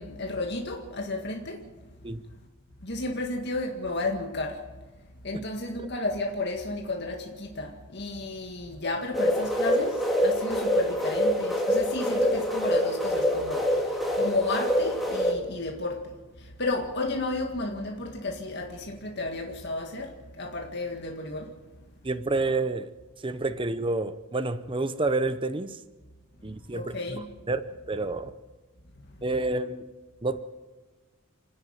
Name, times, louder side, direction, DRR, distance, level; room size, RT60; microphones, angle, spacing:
voice 1, 0.0-1.6 2.8-4.6 5.2-13.7 14.2-16.0 16.6-20.1 20.4-21.5 26.7-27.3, left 2 dB, 55° left, 1.9 m, -32 dB
sound 1, 9.1-15.3, equal, ahead, 2.9 m, -25 dB
voice 2, 22.0-22.9 23.2-25.8 26.4-28.3 29.2-29.9 30.2-30.4, right 2 dB, 25° right, 0.8 m, -29 dB
29.0 x 10.0 x 9.1 m
head